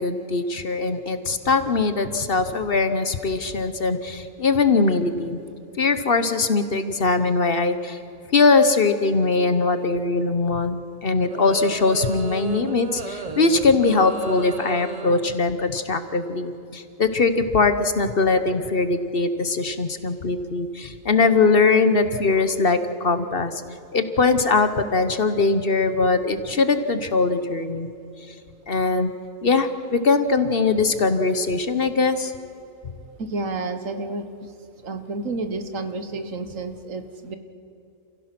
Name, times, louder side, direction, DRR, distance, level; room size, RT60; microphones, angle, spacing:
voice 1, 0.0-5.4 5.8-8.0 8.3-23.6 23.9-27.9 28.7-29.1 29.4-32.3, left 4 dB, 45° left, 10 dB, 1.1 m, -21 dB
sound 1, 11.3-15.5, right 3 dB, 30° right, 1.1 m, -35 dB
voice 2, 21.9-22.4 33.2-34.5 34.8-37.4, right 3 dB, 70° right, 8 dB, 1.6 m, -31 dB
29.0 x 16.5 x 6.0 m, 2.8 s
omnidirectional pair, 1.4 m